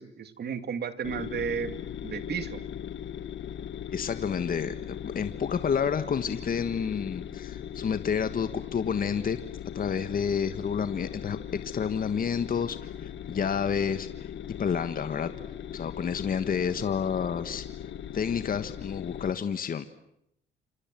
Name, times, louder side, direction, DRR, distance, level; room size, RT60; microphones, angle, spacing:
voice 1, 0.0-2.6, right 7 dB, 55° right, 11 dB, 2.4 m, -34 dB
sound 1, 1.0-19.3, left 9 dB, 70° left, 1.6 m, -39 dB
voice 2, 3.9-9.4 9.7-14.3 14.6-15.3 15.7-17.7 18.1-19.8, left 7 dB, 45° left, 11 dB, 1.5 m, -29 dB
28.0 x 27.0 x 7.6 m, 0.76 s
cardioid pair, 90°, 20 cm